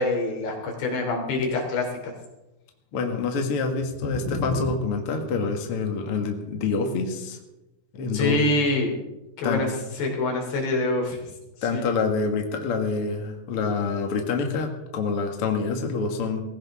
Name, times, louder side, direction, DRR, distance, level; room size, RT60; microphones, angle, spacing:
voice 1, 0.0-2.1 4.1-4.6 8.1-9.0 9.4-9.7 10.0-11.3 11.6-11.8, left 2 dB, 80° left, 1 dB, 5.4 m, -26 dB
voice 2, 2.9-7.4 7.9-8.4 9.4-9.6 11.6-16.4, left 4 dB, 50° left, 3 dB, 1.9 m, -26 dB
20.0 x 15.5 x 3.7 m, 0.99 s
omnidirectional pair, 4.8 m